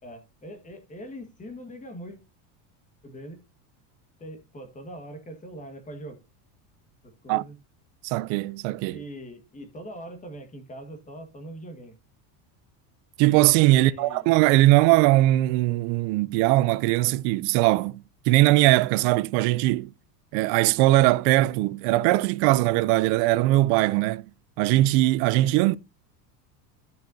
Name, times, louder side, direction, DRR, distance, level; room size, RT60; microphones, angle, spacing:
voice 1, 0.0-2.2 3.0-3.4 4.2-6.2 7.2-7.6 8.9-11.9 13.7-14.2, equal, 15° left, 1.7 m, -41 dB
voice 2, 8.0-9.0 13.2-19.9 20.3-24.2 24.6-25.8, right 17 dB, 55° right, 0.6 m, -20 dB
12.5 x 6.6 x 2.7 m
cardioid pair, 150°, 48 cm